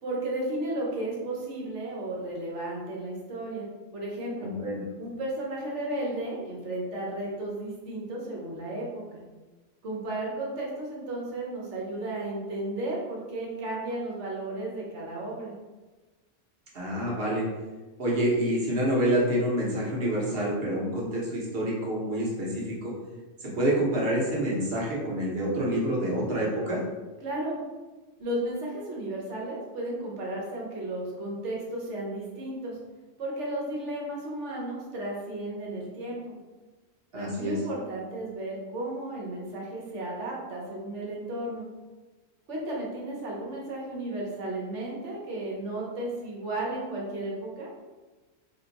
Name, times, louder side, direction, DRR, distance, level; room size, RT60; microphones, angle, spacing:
voice 1, 0.0-3.7 3.9-4.5 5.0-9.2 9.8-15.5 27.2-27.6 28.2-32.8 33.2-36.4 37.1-41.7 42.5-47.7, right 1 dB, 75° right, -3 dB, 1.3 m, -34 dB
voice 2, 4.4-4.8 16.7-17.4 18.0-22.9 23.4-26.8 37.1-37.6, right 1 dB, 55° right, -4 dB, 1.2 m, -27 dB
3.6 x 2.3 x 3.9 m, 1.2 s
omnidirectional pair, 1.2 m